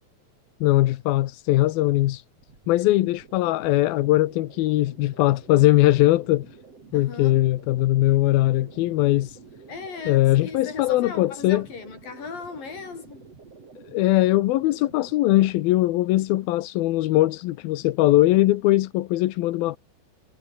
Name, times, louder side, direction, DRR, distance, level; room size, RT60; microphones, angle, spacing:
voice 1, 0.6-2.2 2.7-6.5 6.9-9.4 10.1-11.7 13.9-19.8, left 16 dB, 75° left, 2.7 m, -20 dB
sound 1, 2.4-15.5, right 4 dB, 40° right, 5.1 m, -49 dB
voice 2, 6.9-7.4 9.7-13.3, left 4 dB, 60° left, 7.8 m, -37 dB
omnidirectional pair, 4.5 m